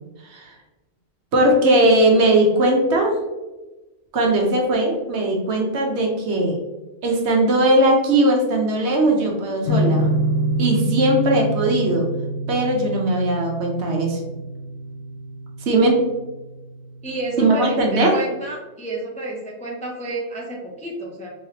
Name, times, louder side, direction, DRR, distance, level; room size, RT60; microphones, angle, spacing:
voice 1, 1.3-3.2 4.1-6.6 7.0-10.1 10.6-12.1 12.5-14.2 15.6-16.0 17.4-18.2, right 1 dB, 70° right, 1 dB, 1.1 m, -19 dB
sound 1, 9.6-16.9, right 1 dB, 90° left, 0.9 m, -26 dB
voice 2, 17.0-21.3, right 2 dB, 10° left, -2 dB, 0.4 m, -30 dB
3.7 x 3.3 x 2.8 m, 1.1 s
omnidirectional pair, 1.2 m